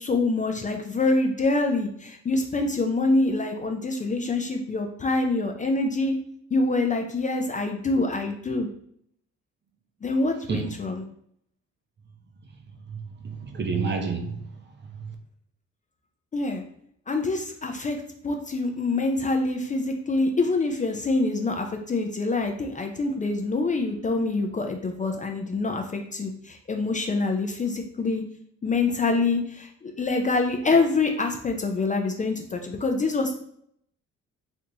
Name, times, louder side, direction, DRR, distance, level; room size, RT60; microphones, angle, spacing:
voice 1, 0.0-6.2 6.5-8.7 10.0-11.0 16.3-16.6 17.1-18.0 18.2-28.2 28.6-33.3, left 3 dB, 25° left, 0.4 m, -25 dB
voice 2, 12.9-14.5 14.8-15.0, right 5 dB, 35° right, 0.6 m, -30 dB
3.3 x 2.6 x 2.8 m
cardioid pair, 90°, 30 cm